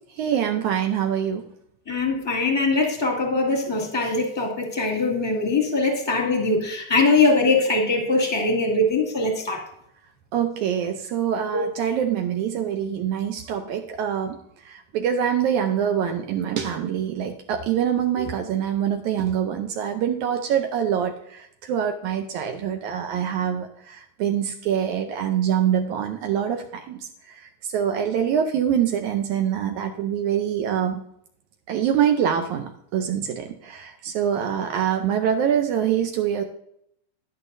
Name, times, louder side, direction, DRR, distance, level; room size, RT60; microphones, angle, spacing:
voice 1, 0.2-1.4 10.3-14.4 14.7-27.0 27.7-31.0 31.7-36.4, right 9 dB, 75° right, 5 dB, 1.9 m, -25 dB
voice 2, 1.9-9.6 11.5-11.6, left 3 dB, 15° left, 1 dB, 1.1 m, -22 dB
10.5 x 9.9 x 2.6 m, 0.73 s
omnidirectional pair, 3.8 m